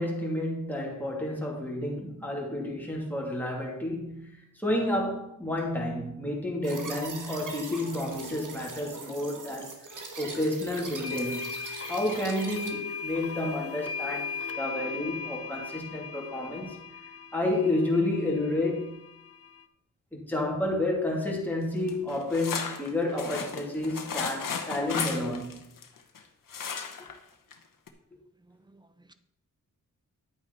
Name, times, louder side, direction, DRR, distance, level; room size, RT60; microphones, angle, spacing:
voice 1, 0.0-9.8 10.2-11.5 11.9-16.8 17.3-19.0 20.1-25.6, left 1 dB, 5° left, 2.9 m, -30 dB
sound 1, 6.6-12.7, right 3 dB, 70° right, 1.8 m, -41 dB
sound 2, 10.8-19.6, left 5 dB, 45° left, 0.8 m, -38 dB
sound 3, 21.9-26.2 26.5-27.2 27.5-27.6 27.9-28.0, left 6 dB, 80° left, 1.2 m, -34 dB
voice 2, 28.5-29.1, right 2 dB, 15° right, 0.7 m, -59 dB
10.5 x 8.7 x 4.1 m
wide cardioid pair, 90°, 32 cm